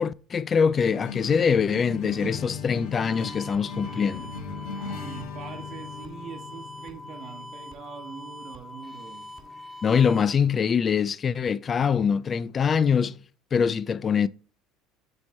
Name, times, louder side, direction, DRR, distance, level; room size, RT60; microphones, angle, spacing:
voice 1, 0.0-4.3 9.8-13.2 13.5-14.3, left 6 dB, 35° left, 0.3 m, -23 dB
sound 1, 0.8-9.5, left 5 dB, 65° left, 1.4 m, -39 dB
sound 2, 2.9-10.3, left 2 dB, 15° left, 1.7 m, -43 dB
voice 2, 4.7-9.3, right 7 dB, 50° right, 1.0 m, -43 dB
7.6 x 3.0 x 4.3 m
hypercardioid pair, 70°, 0 cm